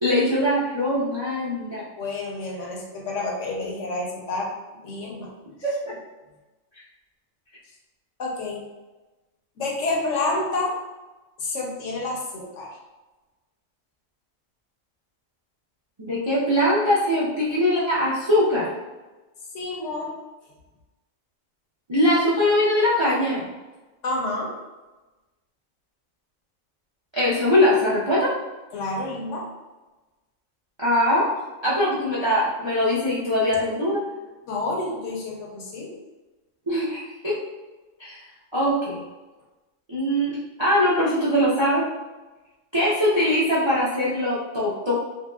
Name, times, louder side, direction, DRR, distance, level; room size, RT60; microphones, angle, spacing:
voice 1, 0.0-1.8 5.6-6.0 16.0-18.7 21.9-23.4 27.1-28.3 30.8-31.3 31.6-34.0 36.7-37.4 38.0-38.2 38.5-39.0 39.9-41.9 42.7-44.9, left 1 dB, 40° right, -9 dB, 0.4 m, -22 dB
voice 2, 2.0-4.5 4.8-5.3 8.2-8.6 9.6-10.7 11.4-12.7 19.5-20.2 24.0-24.5 28.7-29.5 34.5-36.0, left 2 dB, 70° left, -2 dB, 0.9 m, -29 dB
2.9 x 2.7 x 2.3 m, 1.1 s
omnidirectional pair, 1.4 m